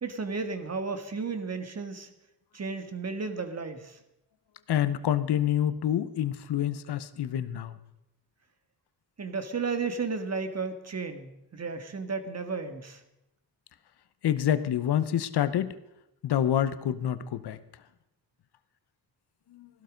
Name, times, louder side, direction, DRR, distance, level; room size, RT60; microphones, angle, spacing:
voice 1, 0.0-2.1 2.5-4.0 9.2-13.0, right 4 dB, 40° right, 8 dB, 1.8 m, -33 dB
voice 2, 4.7-7.8 14.2-15.8 16.2-17.6 19.5-19.7, left 10 dB, 70° left, 14 dB, 1.0 m, -27 dB
16.0 x 12.0 x 5.2 m, 0.88 s
cardioid pair, 80°, 41 cm